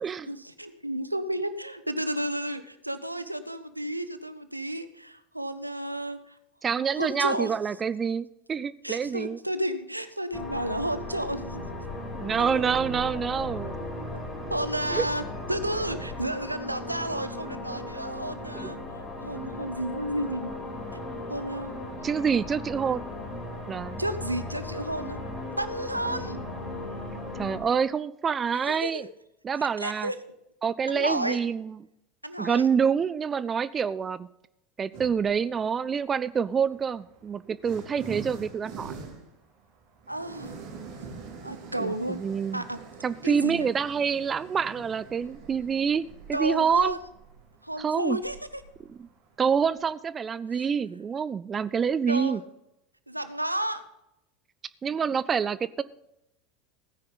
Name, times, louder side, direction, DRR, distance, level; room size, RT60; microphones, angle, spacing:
voice 1, 0.3-6.3 6.9-7.6 8.8-11.7 12.4-12.7 14.5-15.2 15.5-18.8 19.2-20.5 21.3-21.7 24.0-25.2 25.6-26.4 28.6-29.0 29.8-30.2 30.9-31.4 32.2-32.7 40.1-40.6 41.4-42.2 42.5-42.8 43.2-43.7 46.3-47.0 47.6-48.4 50.5-50.6 52.1-52.4 53.1-53.8, right 1 dB, 85° right, 12 dB, 0.7 m, -32 dB
voice 2, 6.6-9.4 12.1-13.8 14.9-15.1 18.6-18.7 22.0-23.0 23.7-24.0 27.3-29.1 29.4-30.1 30.6-31.8 32.4-34.3 34.8-38.9 41.8-42.6 43.0-47.0 47.8-48.2 48.9-49.1 49.4-52.4 54.8-55.8, right 6 dB, 25° right, 17 dB, 0.4 m, -27 dB
sound 1, 10.3-27.6, left 1 dB, 20° left, 5.0 m, -37 dB
sound 2, 34.9-35.4 36.4-49.9, right 5 dB, 50° right, 4.7 m, -45 dB
16.5 x 9.8 x 3.9 m, 0.85 s
figure-of-eight pair, 75°, 0 cm